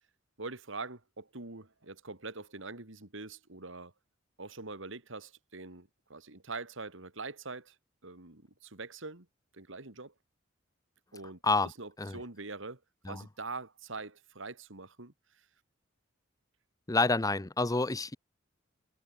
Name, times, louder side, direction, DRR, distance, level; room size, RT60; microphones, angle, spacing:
voice 1, 0.4-3.9 4.4-7.8 8.0-9.3 9.5-10.1 11.1-12.8 13.1-15.5, right 3 dB, 70° right, 2.8 m, -44 dB
voice 2, 16.9-18.2, left 3 dB, 20° left, 0.8 m, -28 dB
head